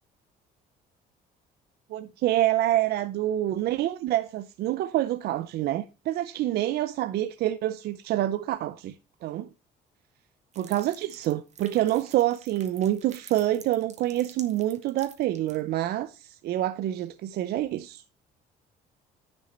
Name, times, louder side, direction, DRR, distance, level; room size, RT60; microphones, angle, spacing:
voice 1, 1.9-9.0 9.2-9.5 10.6-18.0, right 14 dB, 70° right, 0.6 m, -27 dB
sound 1, 10.5-15.6, right 6 dB, 40° right, 2.0 m, -49 dB
10.5 x 6.4 x 4.3 m
cardioid pair, 110°, 17 cm